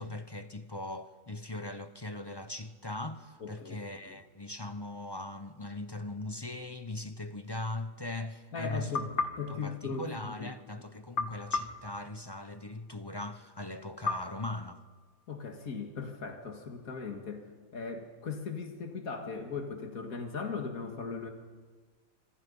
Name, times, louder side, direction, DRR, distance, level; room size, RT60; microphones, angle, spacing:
voice 1, 0.0-9.1 9.5-14.8, left 2 dB, 20° left, 0.8 m, -40 dB
voice 2, 3.4-3.8 4.0-4.2 8.5-9.1 9.4-10.5 15.3-17.4 17.7-21.3, left 5 dB, 90° left, 2.4 m, -38 dB
sound 1, 8.9-10.5 11.1-12.8 14.0-15.4, left 4 dB, 55° left, 1.9 m, -37 dB
26.5 x 25.5 x 5.5 m
omnidirectional pair, 1.4 m